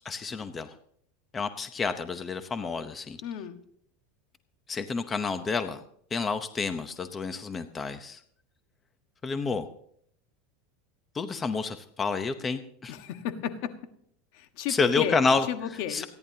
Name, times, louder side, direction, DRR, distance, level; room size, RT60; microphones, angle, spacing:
voice 1, 0.0-0.7 1.3-3.2 4.7-5.8 6.1-8.2 9.2-9.7 11.1-12.9 14.7-15.5 15.9-16.0, left 4 dB, 20° left, 9 dB, 0.8 m, -29 dB
voice 2, 3.2-3.6 12.9-13.7 14.3-15.2 15.5-16.1, left 9 dB, 60° left, 8 dB, 1.4 m, -33 dB
28.5 x 10.5 x 2.8 m, 0.66 s
supercardioid pair, 140°, 0 cm